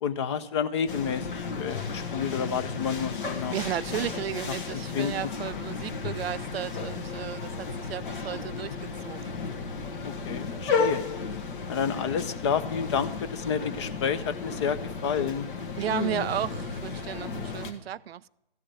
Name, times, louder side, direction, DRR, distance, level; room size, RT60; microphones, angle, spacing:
voice 1, 0.0-3.5 4.7-5.1 10.0-11.0 11.7-15.5 15.9-16.3, left 7 dB, 30° left, 0.6 m, -30 dB
sound 1, 0.9-17.7, left 4 dB, 55° left, 1.4 m, -34 dB
voice 2, 3.5-8.8 9.0-9.2 15.8-18.3, right 10 dB, 80° right, 0.4 m, -34 dB
14.0 x 4.9 x 8.7 m
hypercardioid pair, 140°, 30 cm